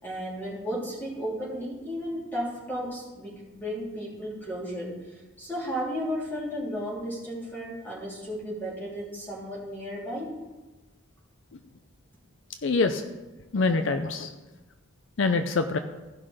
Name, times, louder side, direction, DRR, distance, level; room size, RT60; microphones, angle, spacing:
voice 1, 0.0-10.3, equal, 10° left, -6 dB, 3.3 m, -34 dB
voice 2, 12.6-13.0 13.5-14.3 15.2-15.8, left 3 dB, 65° left, 7 dB, 0.5 m, -24 dB
15.0 x 5.7 x 5.0 m, 1.2 s
head